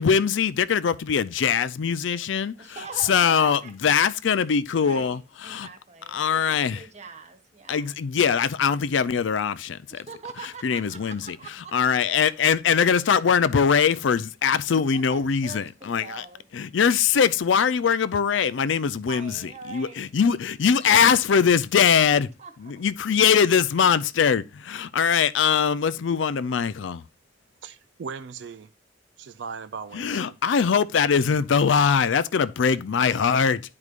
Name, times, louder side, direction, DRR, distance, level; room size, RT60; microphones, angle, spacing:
voice 1, 0.0-2.5 3.1-5.7 6.1-6.8 7.7-10.0 10.6-11.4 11.7-16.2 16.5-19.3 19.7-22.3 22.6-27.0 29.9-33.6, left 6 dB, 85° left, 0.4 m, -22 dB
voice 2, 2.5-3.9 4.8-8.0 9.9-12.5 14.7-16.5 19.1-20.1 22.1-22.8, right 4 dB, 35° right, 1.2 m, -43 dB
voice 3, 27.6-28.7 29.2-30.4, right 5 dB, 70° right, 0.4 m, -38 dB
10.5 x 4.8 x 2.4 m
head